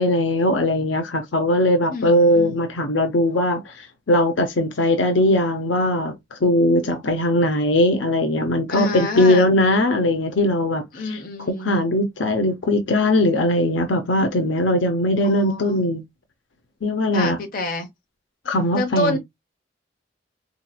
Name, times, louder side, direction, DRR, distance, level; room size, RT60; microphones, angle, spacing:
voice 1, 0.0-11.2 11.5-16.0 16.8-17.4 18.5-19.2, left 1 dB, 75° left, 0.6 m, -20 dB
voice 2, 1.9-2.6 8.7-9.5 10.9-11.8 15.2-15.8 17.1-17.9 18.7-19.2, left 2 dB, 50° left, 1.0 m, -27 dB
3.9 x 2.9 x 2.3 m
head